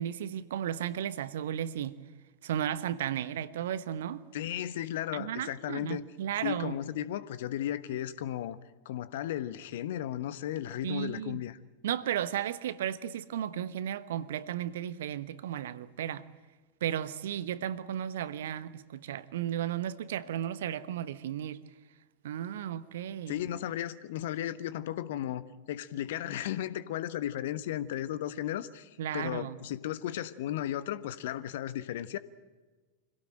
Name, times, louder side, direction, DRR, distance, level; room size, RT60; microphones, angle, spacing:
voice 1, 0.0-2.0 2.4-4.2 5.1-6.7 10.8-11.4 11.8-16.3 16.8-21.6 22.2-23.4 29.0-29.6, right 10 dB, 60° right, 1.0 m, -34 dB
voice 2, 4.3-6.0 6.4-8.6 8.8-11.6 23.3-32.2, left 12 dB, 55° left, 1.1 m, -35 dB
26.0 x 17.5 x 9.0 m
figure-of-eight pair, 90°, 0 cm